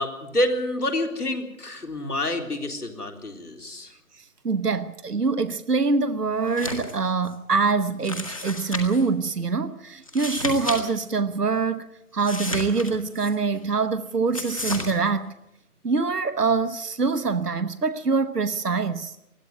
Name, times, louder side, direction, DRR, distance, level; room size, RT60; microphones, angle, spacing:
voice 1, 0.0-3.9, left 1 dB, 70° left, 3.9 m, -28 dB
voice 2, 4.2-11.9 12.1-15.3 15.8-19.2, right 4 dB, 80° right, 1.2 m, -24 dB
sound 1, 6.5-6.9 7.3-7.4 8.0-9.1 10.0-10.8 11.1-11.2 12.2-13.3 14.3-14.9, left 2 dB, 20° left, 1.7 m, -32 dB
20.5 x 13.5 x 9.5 m
figure-of-eight pair, 165°, 47 cm